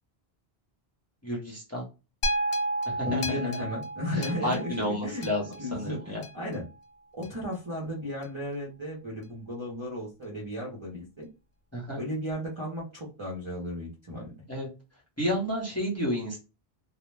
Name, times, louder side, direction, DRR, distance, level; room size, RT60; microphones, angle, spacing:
voice 1, 1.2-1.8 2.9-3.4 4.1-5.4 5.7-6.2 11.7-12.0 14.5-14.7 15.2-16.4, equal, 15° left, -4 dB, 0.7 m, -31 dB
sound 1, 2.2-6.6 7.2-7.3, right 1 dB, 70° left, 0.7 m, -33 dB
voice 2, 3.0-6.6 7.1-11.3 12.0-14.3, left 1 dB, 35° right, -4 dB, 0.6 m, -35 dB
2.1 x 2.1 x 3.1 m, 0.29 s
omnidirectional pair, 1.0 m